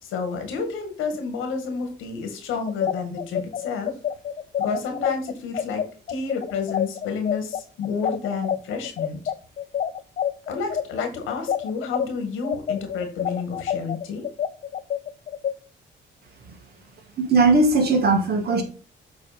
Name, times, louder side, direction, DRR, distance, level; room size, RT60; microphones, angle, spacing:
voice 1, 0.0-3.9 4.6-5.8 6.1-9.2 10.5-14.2, left 5 dB, 90° left, 5 dB, 1.8 m, -30 dB
sound 1, 2.7-12.1 12.4-15.5, left 9 dB, 45° left, 0.5 m, -27 dB
voice 2, 17.2-18.6, right 3 dB, 55° right, 3 dB, 2.0 m, -18 dB
7.6 x 3.4 x 5.2 m, 0.38 s
cardioid pair, 90°, 20 cm